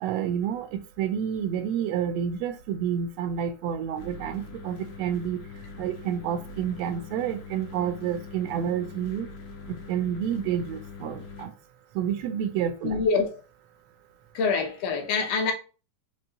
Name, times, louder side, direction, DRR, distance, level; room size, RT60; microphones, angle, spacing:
voice 1, 0.0-5.4 5.8-9.3 9.7-11.5 11.9-13.0, right 9 dB, 80° right, 1.5 m, -29 dB
sound 1, 4.0-11.5, left 5 dB, 85° left, 2.4 m, -42 dB
voice 2, 12.8-13.3 14.4-15.5, left 4 dB, 65° left, 1.8 m, -25 dB
5.4 x 3.0 x 2.8 m
omnidirectional pair, 3.4 m